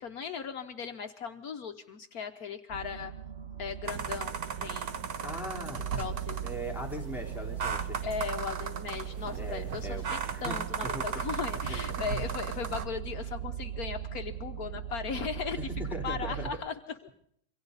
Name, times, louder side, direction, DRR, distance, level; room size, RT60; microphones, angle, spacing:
voice 1, 0.0-3.1 3.6-5.0 5.5-6.5 8.0-15.7 16.0-17.1, left 6 dB, 65° left, 7 dB, 1.4 m, -38 dB
sound 1, 2.7-16.5, right 10 dB, 40° right, 1.5 m, -39 dB
sound 2, 3.9-12.9, right 6 dB, 65° right, 1.7 m, -37 dB
voice 2, 5.2-5.8 6.4-8.0 9.4-10.6 10.8-11.0 11.7-12.1 15.6-15.7 15.9-16.5, equal, ahead, -2 dB, 3.6 m, -39 dB
27.0 x 24.0 x 4.0 m, 0.69 s
omnidirectional pair, 1.7 m